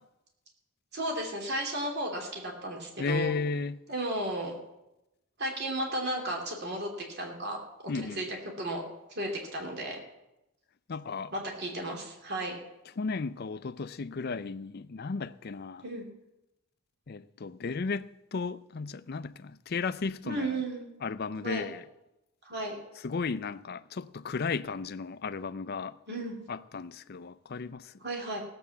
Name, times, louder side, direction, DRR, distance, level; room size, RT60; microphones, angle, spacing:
voice 1, 0.9-3.3 3.9-4.5 5.4-7.6 8.2-8.8 9.2-10.0 11.3-12.5 15.8-16.0 20.2-20.8 21.4-21.7 22.4-22.8 26.1-26.4 28.0-28.4, right 1 dB, 45° right, 2.6 m, -34 dB
voice 2, 3.0-3.8 7.9-8.3 10.9-11.3 13.0-15.8 17.1-20.6 21.0-21.8 23.0-26.0 26.5-27.9, left 4 dB, 45° left, 0.5 m, -34 dB
16.5 x 7.7 x 7.1 m
head